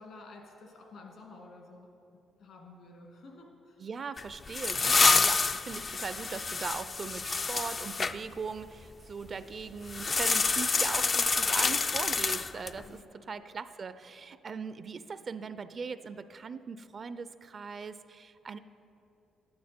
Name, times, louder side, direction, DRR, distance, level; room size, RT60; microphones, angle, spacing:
voice 1, 0.0-1.9 2.4-3.8 12.8-13.2, left 2 dB, 70° left, 0 dB, 2.2 m, -51 dB
voice 2, 3.8-18.6, right 5 dB, 45° right, 13 dB, 0.4 m, -39 dB
sound 1, 4.2-8.1 9.9-12.8, left 4 dB, 35° left, 0.3 m, -27 dB
11.5 x 9.4 x 4.4 m, 2.9 s
cardioid pair, 90°, 0 cm